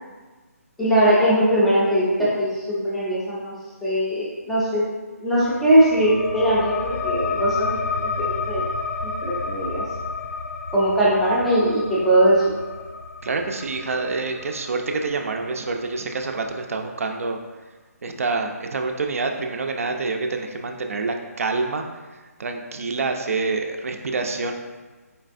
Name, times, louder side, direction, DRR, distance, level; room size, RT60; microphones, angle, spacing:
voice 1, 0.8-3.5 3.8-4.9 5.2-8.6 9.0-9.8 10.7-12.4, right 1 dB, ahead, -10 dB, 0.4 m, -20 dB
sound 1, 5.4-16.5, left 4 dB, 90° left, 0.4 m, -31 dB
voice 2, 13.2-17.4 18.0-21.8 22.4-24.5, right 3 dB, 60° right, 4 dB, 0.4 m, -27 dB
4.4 x 3.2 x 2.5 m, 1.3 s
hypercardioid pair, 165°, 9 cm